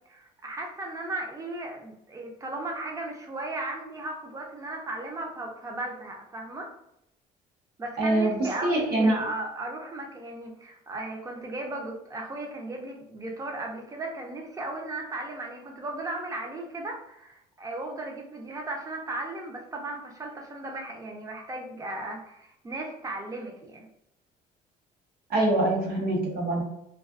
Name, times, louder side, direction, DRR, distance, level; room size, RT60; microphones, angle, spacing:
voice 1, 0.1-6.7 7.8-23.9, right 2 dB, 20° right, 1 dB, 0.6 m, -36 dB
voice 2, 8.0-9.1 25.3-26.6, right 1 dB, 65° right, 0 dB, 0.8 m, -24 dB
2.4 x 2.3 x 2.4 m, 0.80 s
cardioid pair, 110°, 17 cm